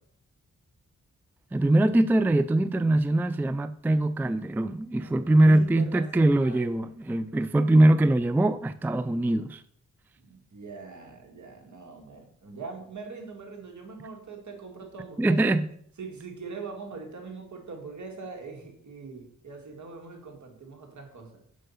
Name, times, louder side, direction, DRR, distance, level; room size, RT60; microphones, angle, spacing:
voice 1, 1.5-9.6 15.2-15.7, right 1 dB, 5° right, 0.3 m, -22 dB
voice 2, 4.9-6.7 10.2-15.5 16.0-21.4, right 4 dB, 65° right, 2.2 m, -42 dB
6.3 x 5.4 x 5.6 m
cardioid pair, 60°, 31 cm